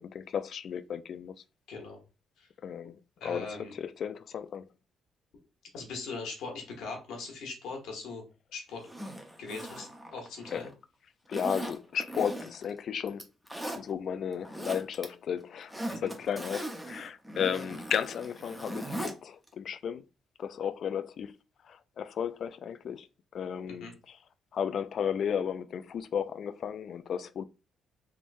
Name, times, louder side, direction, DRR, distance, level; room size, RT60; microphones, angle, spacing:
voice 1, 0.0-1.3 2.6-4.7 10.5-10.6 11.3-13.2 13.8-20.0 20.4-21.3 21.6-23.1 23.3-24.2 24.5-27.4, left 8 dB, 60° left, 0.3 m, -34 dB
voice 2, 1.7-2.0 2.4-2.5 3.2-3.7 5.7-8.2 8.5-8.8 9.4-10.7 15.9-16.1 23.7-23.9, left 4 dB, 85° left, 1.2 m, -40 dB
Zipper (clothing), 8.8-10.7 11.3-12.7 13.1-13.8 14.3-15.1 15.4-19.2 19.5-19.6, right 1 dB, 5° right, 0.8 m, -39 dB
3.6 x 3.0 x 2.6 m
cardioid pair, 90°, 0 cm